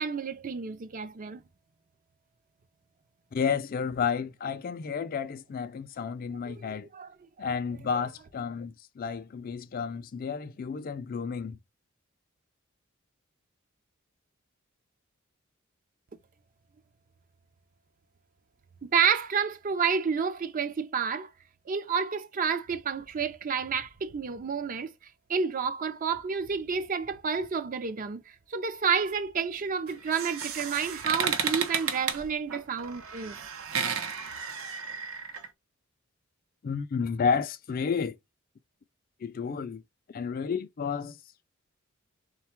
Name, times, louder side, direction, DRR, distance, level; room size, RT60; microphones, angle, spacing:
voice 1, 0.0-1.4 6.4-7.1 7.4-7.5 18.8-21.3 21.7-24.9 25.3-33.4, right 6 dB, 40° right, 0.4 m, -30 dB
voice 2, 3.3-6.9 7.4-11.6 36.6-38.2 39.2-39.8 40.1-41.2, left 6 dB, 45° left, 0.4 m, -31 dB
sound 1, 29.9-35.5, right 6 dB, 75° right, 0.7 m, -33 dB
3.6 x 2.3 x 4.4 m
head